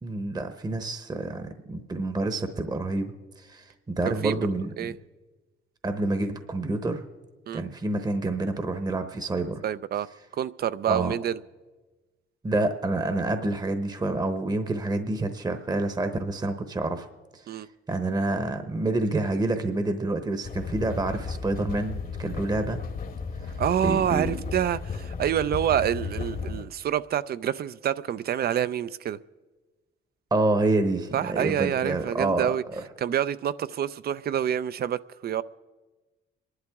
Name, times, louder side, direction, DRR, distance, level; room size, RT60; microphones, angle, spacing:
voice 1, 0.0-4.9 5.8-7.0 7.5-9.6 10.9-11.1 12.4-17.1 17.3-17.6 17.9-22.8 23.8-24.4 30.3-32.8, right 2 dB, 20° right, 9 dB, 0.9 m, -28 dB
voice 2, 4.0-4.4 4.8-4.9 7.5-7.6 9.6-10.1 10.3-11.4 17.5-17.7 23.6-29.2 31.1-32.6 33.0-35.4, right 10 dB, 50° right, 16 dB, 0.4 m, -27 dB
sound 1, 20.4-26.7, left 5 dB, 45° left, 1.1 m, -34 dB
26.5 x 11.5 x 3.6 m, 1.2 s
cardioid pair, 90°, 20 cm